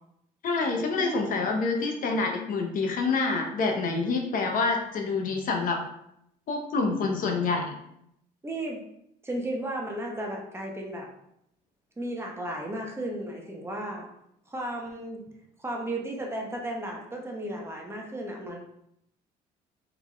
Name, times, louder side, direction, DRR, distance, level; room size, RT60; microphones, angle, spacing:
voice 1, 0.4-5.8 6.5-7.6, left 4 dB, 55° left, 2 dB, 0.8 m, -27 dB
voice 2, 8.4-8.8 9.2-11.1 12.0-14.1 14.5-15.3 15.6-18.6, right 1 dB, 15° right, -1 dB, 0.9 m, -34 dB
4.0 x 3.4 x 3.1 m, 0.75 s
cardioid pair, 110°, 17 cm